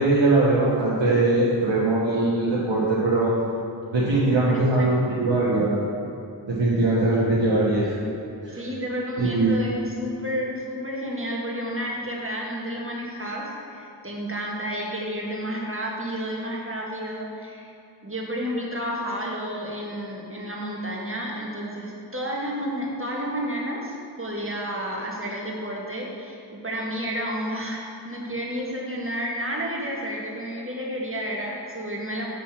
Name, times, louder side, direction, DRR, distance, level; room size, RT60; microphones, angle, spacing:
voice 1, 0.0-3.3 3.9-5.8 6.5-7.9 8.4-8.6 9.2-9.5, right 2 dB, 85° right, -8 dB, 1.3 m, -21 dB
voice 2, 4.3-5.1 8.5-17.7 18.0-32.2, equal, 30° right, -3 dB, 1.6 m, -31 dB
8.1 x 4.3 x 5.8 m, 2.6 s
wide cardioid pair, 45°, 43 cm